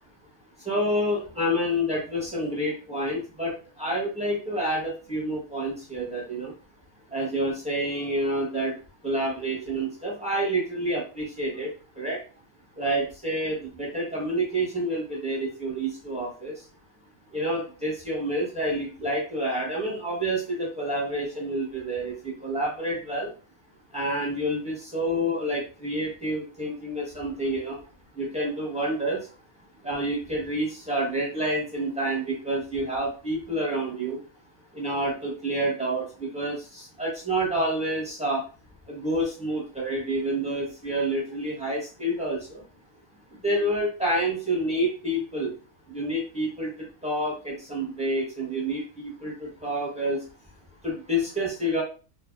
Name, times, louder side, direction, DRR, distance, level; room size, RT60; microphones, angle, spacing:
voice 1, 0.6-6.5 7.1-8.7 9.0-12.2 12.8-16.5 17.3-23.3 23.9-27.8 28.2-29.3 29.8-34.2 34.7-38.5 38.9-42.6 43.4-45.5 45.9-50.2 50.8-51.8, right 1 dB, 5° right, -4 dB, 0.8 m, -28 dB
2.7 x 2.5 x 2.3 m, 0.35 s
omnidirectional pair, 1.6 m